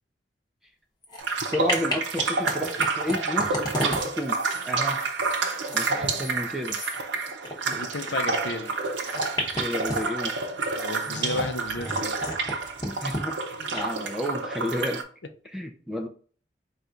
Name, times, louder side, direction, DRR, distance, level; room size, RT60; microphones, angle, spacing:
sound 1, 1.0-1.2 1.5-2.5 2.8-7.8 8.1-8.2 9.0-10.3 10.9-12.5 12.8-13.2 13.7-13.8, left 1 dB, 20° left, 0.8 m, -33 dB
sound 2, 1.2-15.0, right 4 dB, 75° right, 0.6 m, -29 dB
voice 1, 1.4-5.0 5.7-6.8 7.7-7.8 9.5-10.4 12.9-13.4 13.7-15.0 15.4-16.1, left 1 dB, ahead, 3 dB, 0.4 m, -32 dB
voice 2, 7.7-8.7 10.7-12.2, left 2 dB, 70° left, 7 dB, 0.6 m, -33 dB
4.5 x 2.4 x 3.7 m, 0.42 s
head